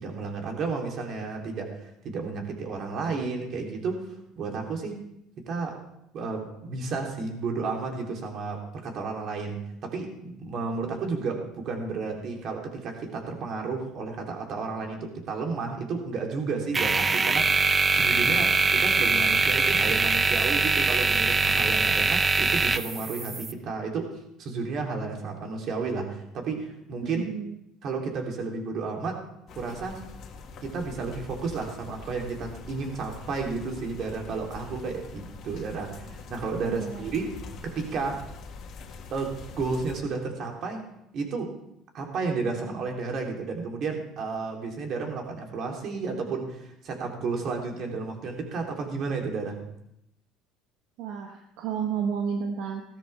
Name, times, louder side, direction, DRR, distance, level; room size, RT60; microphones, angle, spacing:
voice 1, 0.0-5.0 5.5-5.8 6.1-24.1 24.4-27.2 27.8-29.2 29.6-30.0 30.6-37.3 37.6-38.2 39.1-40.8 41.1-41.5 41.9-49.6, right 4 dB, 55° right, 1 dB, 3.0 m, -32 dB
sound 1, 16.7-23.5, right 4 dB, 25° right, 0.6 m, -23 dB
voice 2, 27.0-27.5 36.6-37.1 51.0-52.8, right 7 dB, 75° right, 3 dB, 1.2 m, -31 dB
sound 2, 29.5-40.0, left 4 dB, 55° left, 1.8 m, -44 dB
15.0 x 13.0 x 3.4 m, 0.78 s
supercardioid pair, 100°, 0 cm